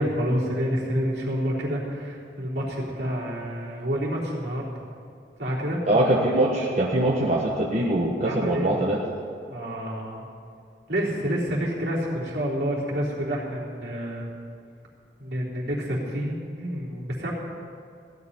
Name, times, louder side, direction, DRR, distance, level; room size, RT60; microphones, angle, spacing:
voice 1, 0.0-4.9 5.4-5.8 8.2-8.8 9.5-10.3 10.9-14.4 15.2-17.3, equal, 70° right, -5 dB, 3.7 m, -28 dB
voice 2, 5.9-9.0, right 1 dB, 40° right, -4 dB, 1.4 m, -22 dB
16.0 x 7.0 x 10.0 m, 2.4 s
head